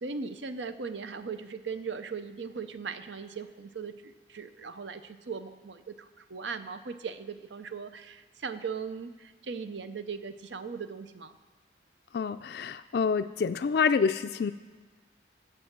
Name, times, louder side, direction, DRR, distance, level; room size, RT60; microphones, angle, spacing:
voice 1, 0.0-11.3, right 5 dB, 80° right, 11 dB, 0.7 m, -38 dB
voice 2, 12.1-14.5, left 5 dB, 60° left, 10 dB, 0.3 m, -27 dB
14.5 x 7.5 x 6.1 m, 1.4 s
head